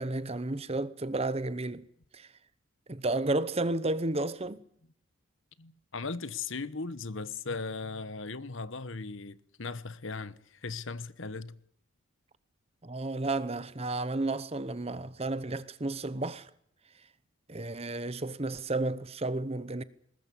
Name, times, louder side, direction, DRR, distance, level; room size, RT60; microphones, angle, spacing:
voice 1, 0.0-1.9 2.1-2.3 2.9-4.6 12.8-16.5 17.5-19.8, right 2 dB, 25° right, 0.9 m, -32 dB
voice 2, 5.6-11.6, left 4 dB, 60° left, 1.1 m, -38 dB
21.5 x 20.0 x 8.3 m
head